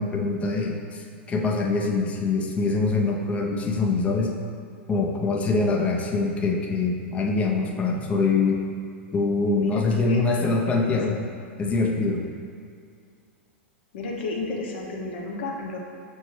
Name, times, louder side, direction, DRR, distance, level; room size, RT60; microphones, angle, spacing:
voice 1, 0.0-4.3 4.9-8.6 9.1-11.3 11.6-12.2, left 3 dB, 20° left, 0 dB, 0.5 m, -24 dB
voice 2, 9.6-10.6 10.8-11.0 13.9-15.8, left 2 dB, 60° left, -1 dB, 0.7 m, -32 dB
5.8 x 2.6 x 3.1 m, 2.3 s
figure-of-eight pair, 95°, 6 cm